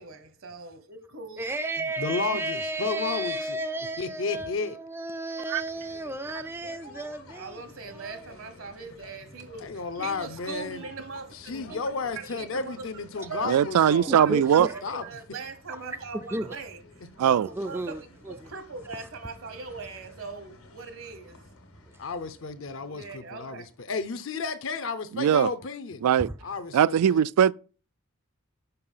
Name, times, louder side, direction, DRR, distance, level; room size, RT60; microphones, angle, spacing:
voice 1, 0.0-1.5 7.3-11.4 11.7-11.8 12.2-12.9 13.2-13.5 14.1-16.8 17.3-21.4 22.9-23.6, right 4 dB, 65° right, 1.0 m, -40 dB
voice 2, 1.4-7.6 7.9-8.3 11.5-11.8 12.3-12.4 14.1-14.8 16.1-16.5 17.5-18.5 26.2-26.3, right 2 dB, 10° right, 0.3 m, -33 dB
voice 3, 2.0-3.6 4.0-4.8 9.6-10.9 11.3-14.5 14.8-15.0 22.0-26.0 26.4-27.2, left 4 dB, 60° left, 0.6 m, -33 dB
sound 1, 5.4-23.9, left 2 dB, 80° left, 1.5 m, -51 dB
voice 4, 13.4-14.7 17.2-17.5 25.1-25.5 26.0-26.3 26.7-27.5, right 9 dB, 90° right, 0.3 m, -20 dB
6.8 x 5.4 x 5.5 m
head